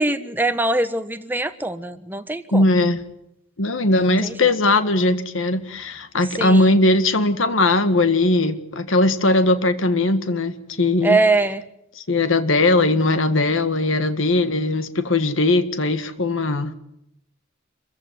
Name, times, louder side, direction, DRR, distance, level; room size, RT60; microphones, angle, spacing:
voice 1, 0.0-2.6 4.0-4.5 6.3-6.8 11.0-11.6, right 2 dB, 10° right, 9 dB, 1.4 m, -22 dB
voice 2, 2.5-3.0 3.6-11.2 12.0-16.7, left 2 dB, 85° left, 10 dB, 1.8 m, -19 dB
27.0 x 15.5 x 9.6 m, 0.79 s
head